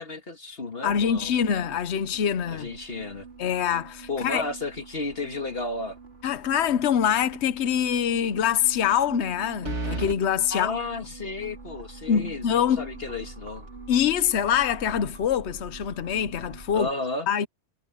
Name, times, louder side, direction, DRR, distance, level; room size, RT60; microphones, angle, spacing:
voice 1, 0.0-1.3 2.5-3.3 4.1-6.0 10.5-13.7 16.7-17.3, left 3 dB, 60° left, 2.3 m, -33 dB
voice 2, 0.8-2.7 3.4-4.4 6.2-10.7 12.1-12.9 13.9-16.9 17.3-17.5, left 8 dB, 75° left, 1.1 m, -24 dB
sound 1, 0.8-16.9, right 4 dB, 65° right, 4.1 m, -45 dB
sound 2, 6.5-7.0 7.4-7.5 9.6-10.2, right 2 dB, 80° right, 2.4 m, -32 dB
omnidirectional pair, 1.1 m